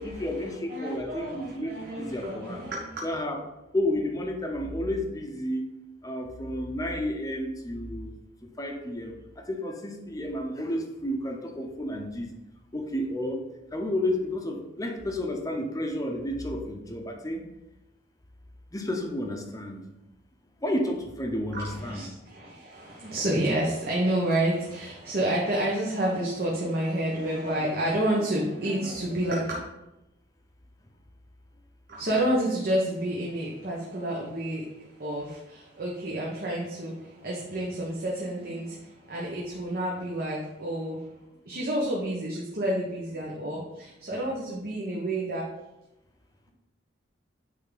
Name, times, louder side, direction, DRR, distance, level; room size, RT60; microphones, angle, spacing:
voice 1, 0.0-2.6 3.0-3.4 3.7-5.6 6.0-8.1 8.6-12.3 12.7-13.4 13.7-17.4 18.7-19.8 20.6-22.0 44.1-44.2, left 1 dB, 20° left, 2 dB, 0.8 m, -31 dB
voice 2, 0.7-3.0 21.5-29.6 31.9-41.0 41.5-45.5, right 1 dB, 50° right, -3 dB, 1.1 m, -29 dB
9.1 x 3.5 x 4.0 m, 0.94 s
head